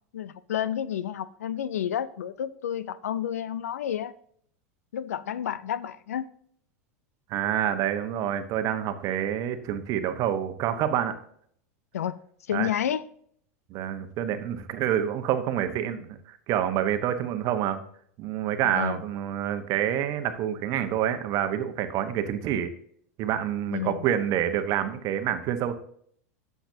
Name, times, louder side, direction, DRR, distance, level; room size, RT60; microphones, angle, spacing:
voice 1, 0.1-4.1 4.9-6.3 11.9-12.2 12.5-13.0 18.6-19.0 23.7-24.1, left 10 dB, 85° left, 0.5 m, -30 dB
voice 2, 7.3-11.2 12.5-12.7 13.7-17.8 18.2-22.7 23.2-25.7, right 10 dB, 45° right, 1.1 m, -27 dB
10.0 x 7.1 x 2.7 m
hypercardioid pair, 100°, 8 cm